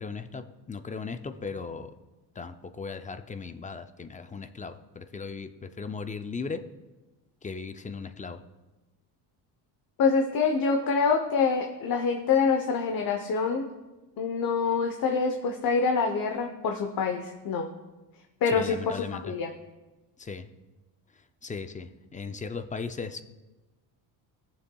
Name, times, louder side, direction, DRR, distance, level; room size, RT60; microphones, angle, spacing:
voice 1, 0.0-1.9 2.4-6.6 7.4-8.4 18.5-19.3 20.2-20.5 21.4-23.2, left 4 dB, 20° left, 9 dB, 0.4 m, -37 dB
voice 2, 10.0-13.7 14.2-17.7 18.4-19.5, left 5 dB, 50° left, 4 dB, 0.9 m, -26 dB
19.5 x 7.1 x 2.3 m, 1.1 s
cardioid pair, 105°, 46 cm